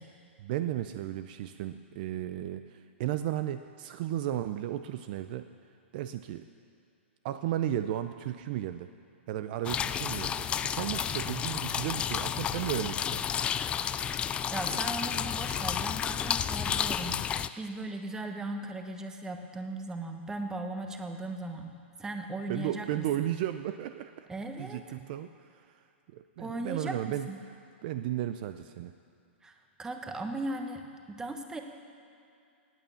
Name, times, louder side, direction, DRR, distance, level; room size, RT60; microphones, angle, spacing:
voice 1, 0.4-5.5 5.9-6.4 7.2-8.9 9.3-13.2 22.5-24.3 24.6-25.8 26.1-27.3 27.8-28.9, right 12 dB, 45° right, 10 dB, 0.5 m, -34 dB
sound 1, 9.6-17.5, left 8 dB, 15° left, 0.3 m, -31 dB
voice 2, 14.5-23.3 24.3-24.8 26.4-27.4 29.4-30.8 31.1-31.6, right 2 dB, 10° right, 5 dB, 1.1 m, -38 dB
18.0 x 8.9 x 7.0 m, 2.5 s
hypercardioid pair, 140°, 7 cm